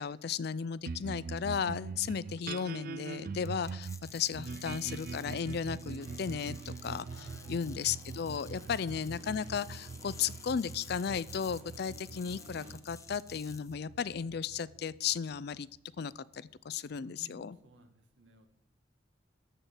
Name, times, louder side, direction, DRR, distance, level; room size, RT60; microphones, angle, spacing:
voice 1, 0.0-7.1 7.5-15.7 16.0-17.6, left 7 dB, 60° left, 19 dB, 0.4 m, -35 dB
sound 1, 0.8-15.5, right 5 dB, 50° right, 0.4 m, -43 dB
sound 2, 3.4-13.7, left 5 dB, 15° left, 0.6 m, -54 dB
sound 3, 5.9-12.7, right 1 dB, 35° right, 2.4 m, -56 dB
voice 2, 7.1-7.6 8.5-8.7 16.9-18.5, right 2 dB, 80° right, 6 dB, 1.7 m, -58 dB
13.5 x 4.5 x 8.1 m, 0.80 s
head